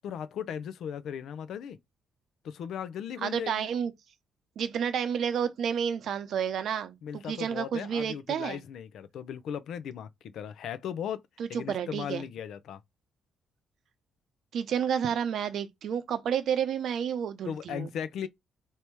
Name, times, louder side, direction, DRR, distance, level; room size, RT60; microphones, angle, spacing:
voice 1, 0.0-1.8 2.4-3.7 7.0-11.2 11.5-12.8 17.5-18.3, left 8 dB, 75° left, 0.5 m, -37 dB
voice 2, 3.2-3.9 4.6-8.6 11.4-12.2 14.5-17.9, right 8 dB, 70° right, 0.8 m, -30 dB
3.3 x 2.8 x 4.6 m
cardioid pair, 90°, 0 cm